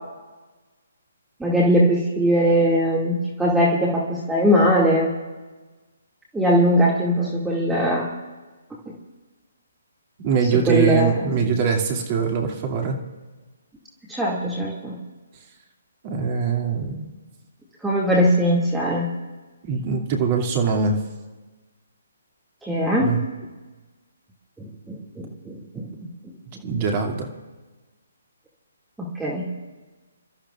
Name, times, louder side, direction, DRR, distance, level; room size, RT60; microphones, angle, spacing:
voice 1, 1.4-5.1 6.3-8.1 8.9-9.0 10.7-11.5 14.1-15.0 17.8-19.1 22.6-23.1 24.6-25.9 29.0-29.5, equal, 5° right, -6 dB, 2.3 m, -21 dB
voice 2, 10.2-13.0 16.0-17.1 19.6-21.0 23.0-23.2 26.6-27.3, right 6 dB, 35° right, 1 dB, 2.5 m, -22 dB
28.0 x 13.5 x 2.5 m, 1.3 s
figure-of-eight pair, 140°, 0 cm